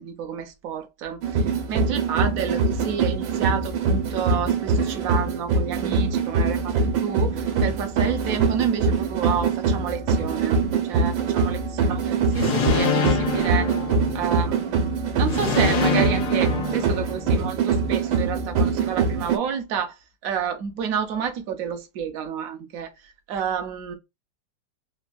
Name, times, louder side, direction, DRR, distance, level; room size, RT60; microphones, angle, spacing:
voice 1, 0.0-1.4 1.7-10.6 10.9-11.6 12.3-13.7 14.1-19.9 20.2-22.9 23.3-23.9, right 7 dB, 65° right, 0.9 m, -30 dB
sound 1, 1.2-19.4, right 4 dB, 90° right, 1.4 m, -23 dB
sound 2, 12.3-14.5 15.3-17.5, left 4 dB, 65° left, 1.2 m, -25 dB
3.4 x 2.2 x 2.2 m
omnidirectional pair, 2.0 m